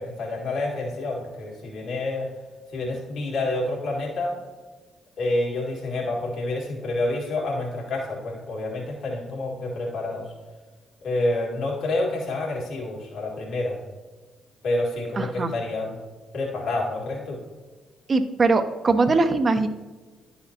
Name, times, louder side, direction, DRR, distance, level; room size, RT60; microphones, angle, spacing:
voice 1, 0.0-2.3 2.7-4.3 5.2-10.3 11.0-13.8 14.6-15.9 16.3-17.4, left 2 dB, 70° left, -3 dB, 1.8 m, -28 dB
voice 2, 15.2-15.5 18.1-19.7, right 3 dB, 45° right, 8 dB, 0.7 m, -21 dB
10.5 x 4.3 x 2.8 m, 1.3 s
hypercardioid pair, 45°, 0 cm